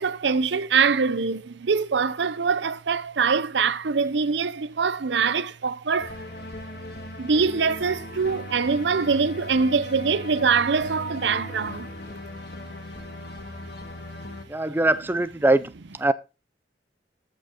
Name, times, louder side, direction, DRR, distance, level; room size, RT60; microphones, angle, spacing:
voice 1, 0.0-6.2 7.2-11.9, right 5 dB, 85° right, 0.7 m, -23 dB
sound 1, 6.0-14.5, left 1 dB, 60° left, 1.7 m, -38 dB
voice 2, 14.5-16.1, right 2 dB, 10° right, 0.5 m, -22 dB
14.5 x 5.2 x 3.7 m
head